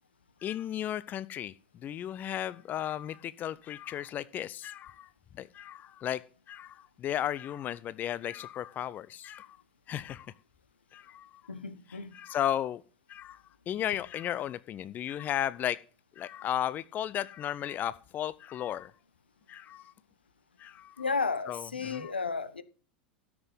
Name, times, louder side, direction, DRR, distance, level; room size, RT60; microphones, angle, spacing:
voice 1, 0.4-1.5 1.8-5.1 5.4-6.2 6.5-9.6 9.9-10.3 10.9-11.3 12.1-12.8 13.1-15.8 16.2-18.9 19.5-19.9 20.6-20.9 21.5-22.1, left 11 dB, 35° left, 0.6 m, -35 dB
voice 2, 11.5-12.2 21.0-22.6, left 4 dB, 85° left, 1.1 m, -33 dB
13.0 x 7.3 x 5.5 m
figure-of-eight pair, 85°, 5 cm